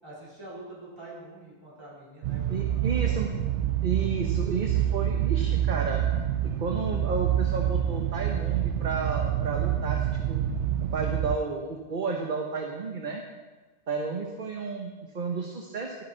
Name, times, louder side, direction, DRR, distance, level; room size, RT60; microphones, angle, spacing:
voice 1, 0.0-3.2, right 1 dB, 25° right, -9 dB, 4.5 m, -45 dB
sound 1, 2.2-11.4, right 11 dB, 80° right, 0.9 m, -27 dB
voice 2, 2.5-3.3 3.8-6.0 6.4-10.5 10.9-13.2 13.9-16.0, right 4 dB, 50° right, 1 dB, 1.1 m, -32 dB
12.5 x 9.6 x 4.4 m, 1.3 s
omnidirectional pair, 1.1 m